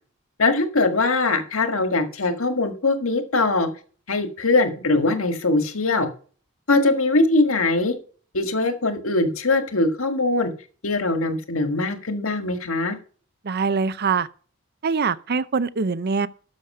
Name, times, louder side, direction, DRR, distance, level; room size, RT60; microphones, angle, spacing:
voice 1, 0.4-3.7 4.1-6.1 6.7-8.0 8.3-10.5 10.8-13.0, left 2 dB, 75° left, 1.7 m, -21 dB
voice 2, 13.4-14.3 14.8-16.3, right 5 dB, 50° right, 0.6 m, -23 dB
12.5 x 6.5 x 5.5 m
head